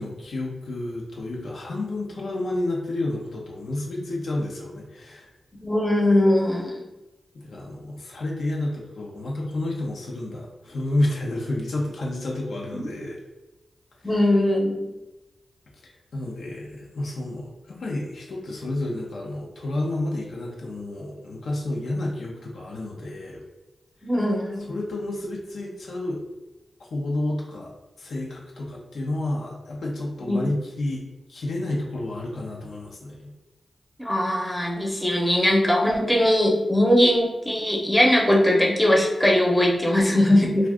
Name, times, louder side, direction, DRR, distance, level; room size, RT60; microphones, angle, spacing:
voice 1, 0.0-5.3 7.4-13.2 14.0-14.3 15.8-23.4 24.7-26.2 26.8-31.0 31.3-33.3, left 1 dB, 80° left, -2 dB, 0.6 m, -30 dB
voice 2, 5.6-6.8 12.7-12.8 14.0-14.8 24.0-24.7 30.2-30.4 34.0-40.7, left 1 dB, 5° left, -1 dB, 0.8 m, -20 dB
2.4 x 2.3 x 3.4 m, 1.0 s
cardioid pair, 50°, 0 cm